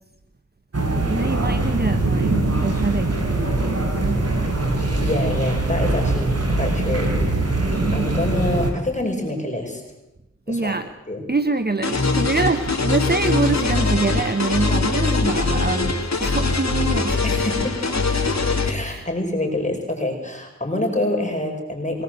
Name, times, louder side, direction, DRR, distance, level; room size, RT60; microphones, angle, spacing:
sound 1, 0.7-8.7, right 2 dB, 55° right, 4.7 m, -22 dB
voice 1, 1.1-4.6 7.8-8.3 10.5-10.9 11.3-17.3 18.8-19.1, right 3 dB, 35° right, 9 dB, 1.1 m, -25 dB
voice 2, 5.0-7.4 7.9-9.8 10.5-10.7 11.1-11.2 17.2-17.7 18.1-18.2 18.6-22.0, left 1 dB, 25° left, 1 dB, 5.4 m, -26 dB
sound 2, 11.8-18.7, left 3 dB, 65° left, 3.0 m, -22 dB
23.5 x 19.0 x 7.7 m, 0.94 s
wide cardioid pair, 50°, 29 cm